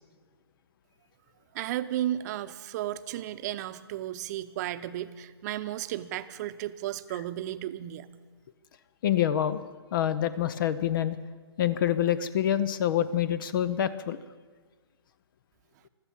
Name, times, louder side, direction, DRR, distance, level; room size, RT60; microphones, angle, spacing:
voice 1, 1.5-8.1, right 13 dB, 40° right, 12 dB, 0.8 m, -34 dB
voice 2, 9.0-9.6 9.9-11.2 11.6-14.2, left 10 dB, 50° left, 15 dB, 0.7 m, -26 dB
16.0 x 12.5 x 7.1 m, 1.4 s
hypercardioid pair, 130°, 14 cm